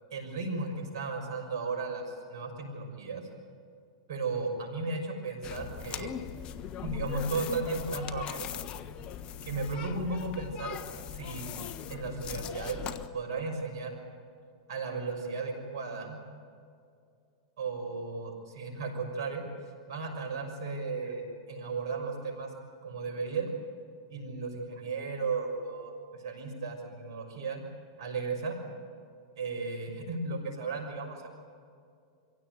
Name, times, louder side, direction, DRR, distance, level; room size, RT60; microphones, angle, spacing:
voice 1, 0.1-3.2 4.1-6.1 6.8-8.5 9.4-10.8 11.1-11.6 11.9-14.0 14.7-16.2 17.6-19.4 19.9-22.5 22.8-23.5 24.1-27.6 28.0-28.6 29.4-31.3, right 3 dB, 70° right, 3 dB, 6.2 m, -35 dB
sound 1, 5.4-13.1, left 9 dB, 40° left, 1.2 m, -39 dB
25.0 x 16.5 x 9.3 m, 2.3 s
hypercardioid pair, 110°, 3 cm